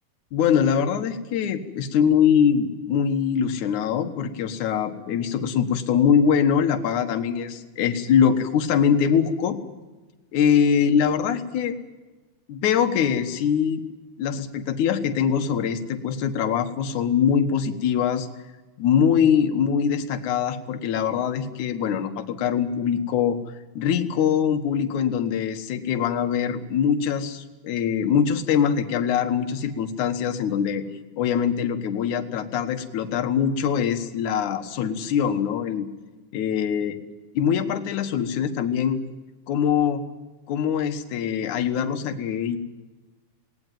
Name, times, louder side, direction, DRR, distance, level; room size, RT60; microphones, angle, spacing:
voice 1, 0.3-9.6 10.3-11.8 12.5-13.8 14.2-18.3 18.8-23.4 23.8-30.8 31.2-35.9 36.3-36.9 37.3-39.0 39.5-40.0 40.5-42.6, left 7 dB, 70° left, 7 dB, 2.7 m, -23 dB
19.5 x 18.5 x 9.2 m, 1.2 s
omnidirectional pair, 3.8 m